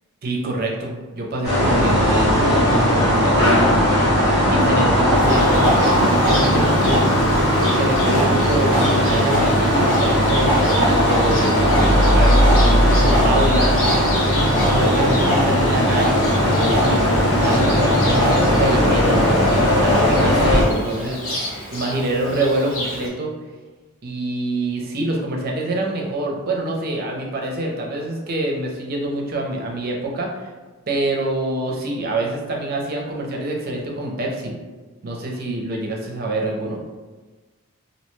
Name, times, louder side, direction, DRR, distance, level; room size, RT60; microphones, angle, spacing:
voice 1, 0.2-3.9 4.5-7.3 7.6-13.9 14.5-23.3 24.0-30.5 30.9-34.6 35.0-36.8, right 1 dB, 45° right, -1 dB, 0.5 m, -26 dB
sound 1, 1.4-20.6, equal, 90° left, 1.0 m, -17 dB
Livestock farm animals working animals, 5.1-23.1, equal, 65° left, 0.7 m, -27 dB
2.6 x 2.1 x 3.0 m, 1.3 s
head